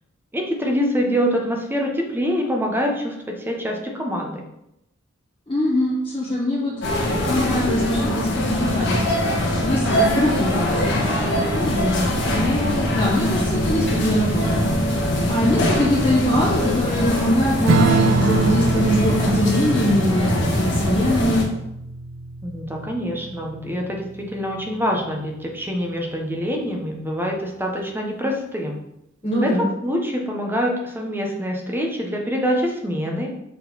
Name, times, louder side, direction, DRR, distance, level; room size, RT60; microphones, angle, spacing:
voice 1, 0.3-4.4 22.4-28.8 29.4-33.3, equal, 10° right, 1 dB, 0.9 m, -25 dB
voice 2, 5.5-6.7 7.3-9.2 9.6-14.6 15.3-21.5 29.2-29.7, left 1 dB, 25° left, -9 dB, 1.7 m, -22 dB
sound 1, 6.8-21.4, left 1 dB, 65° left, 1.6 m, -22 dB
Strum, 17.7-24.5, right 3 dB, 70° right, 0.5 m, -25 dB
6.8 x 3.9 x 4.1 m, 0.82 s
head